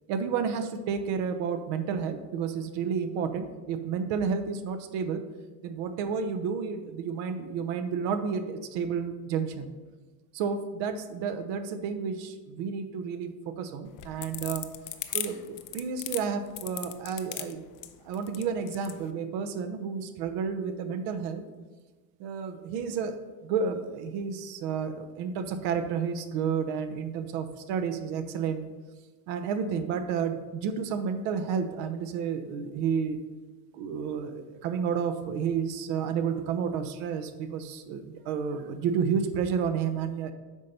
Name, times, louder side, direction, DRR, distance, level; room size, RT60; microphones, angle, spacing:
voice 1, 0.1-5.2 5.6-9.7 10.3-14.6 15.1-17.6 18.0-21.4 22.2-23.2 23.4-28.6 29.3-33.2 33.7-40.3, right 6 dB, 60° right, 9 dB, 1.0 m, -31 dB
sound 1, 13.9-19.0, left 12 dB, 45° left, 0.7 m, -36 dB
8.3 x 5.3 x 4.3 m, 1.3 s
hypercardioid pair, 70°, 47 cm